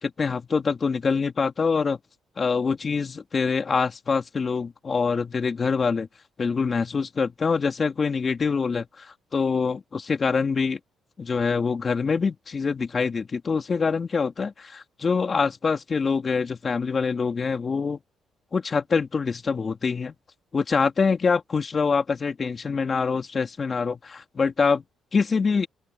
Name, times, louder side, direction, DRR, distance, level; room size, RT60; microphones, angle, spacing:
voice 1, 0.0-2.0 2.4-6.1 6.4-9.1 9.3-10.8 11.2-18.0 18.5-20.1 20.5-24.8 25.1-25.7, left 5 dB, 40° left, 2.8 m, -25 dB
open air
cardioid pair, 90°, 0 cm